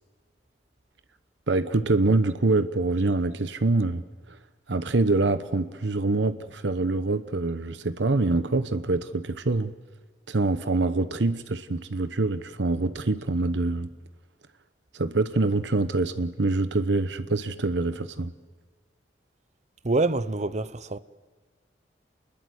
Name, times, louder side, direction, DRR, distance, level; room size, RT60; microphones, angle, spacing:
voice 1, 1.5-4.0 4.3-4.4 4.7-9.7 10.3-13.9 14.9-18.3, right 2 dB, 80° right, 1.0 m, -25 dB
voice 2, 19.8-21.0, right 2 dB, 40° right, 0.8 m, -26 dB
28.0 x 21.0 x 8.0 m
head